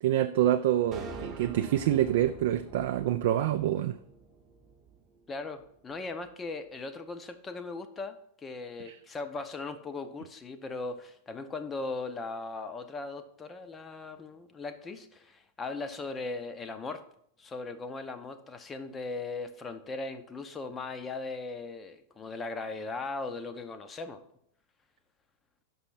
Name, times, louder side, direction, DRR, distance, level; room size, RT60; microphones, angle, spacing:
voice 1, 0.0-4.0 8.9-9.0, right 12 dB, 55° right, 8 dB, 0.3 m, -26 dB
sound 1, 0.9-5.3, right 4 dB, 30° right, 0.8 m, -45 dB
voice 2, 5.3-17.0 17.4-24.2, left 3 dB, 20° left, 8 dB, 0.6 m, -38 dB
5.9 x 5.5 x 5.7 m, 0.69 s
figure-of-eight pair, 90°, 0 cm